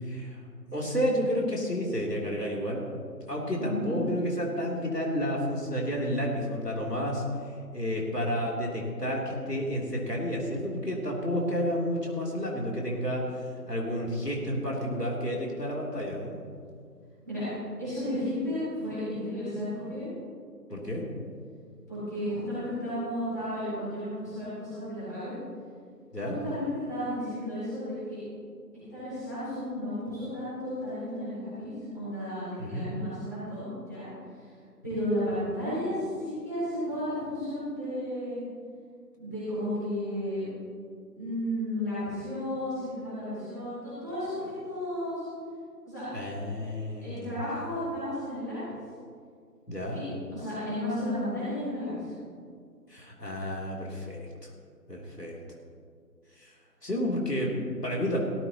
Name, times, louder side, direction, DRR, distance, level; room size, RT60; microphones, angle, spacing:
voice 1, 0.0-0.4 0.7-2.8 3.3-13.3 13.7-16.4 20.7-21.0 26.1-26.4 32.6-32.9 46.1-47.3 49.7-50.0 52.9-54.3 54.9-55.4 56.3-56.5 56.8-57.5 57.8-58.2, equal, 75° left, -3 dB, 3.4 m, -31 dB
voice 2, 3.6-3.9 17.2-17.5 17.8-20.1 21.9-25.3 26.4-28.2 28.9-34.4 34.8-38.4 39.2-40.5 41.1-45.2 45.8-46.1 47.0-48.8 49.9-52.1 57.5-57.7, left 1 dB, 10° left, -16 dB, 4.2 m, -33 dB
17.5 x 14.0 x 3.0 m, 2.2 s
figure-of-eight pair, 175°, 48 cm